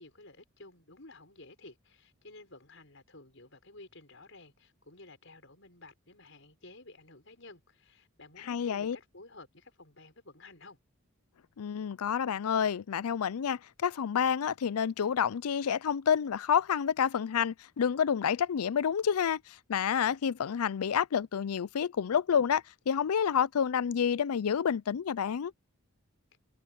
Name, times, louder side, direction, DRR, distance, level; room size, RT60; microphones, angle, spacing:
voice 1, 0.0-10.8, left 2 dB, 60° left, 6.7 m, -53 dB
voice 2, 8.4-9.0 11.6-19.4 19.7-25.5, left 7 dB, 85° left, 0.4 m, -29 dB
head